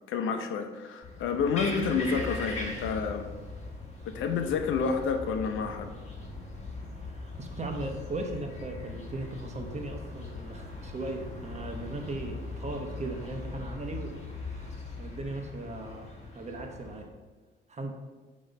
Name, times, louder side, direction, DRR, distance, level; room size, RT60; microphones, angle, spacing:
voice 1, 0.1-3.3 4.1-5.9, left 5 dB, 85° left, 6 dB, 0.7 m, -29 dB
sound 1, 1.0-17.0, left 3 dB, 35° left, 1.8 m, -40 dB
voice 2, 7.1-17.1 17.7-17.9, right 2 dB, 35° right, 4 dB, 1.1 m, -38 dB
7.7 x 3.1 x 5.4 m, 1.3 s
cardioid pair, 90°, 20 cm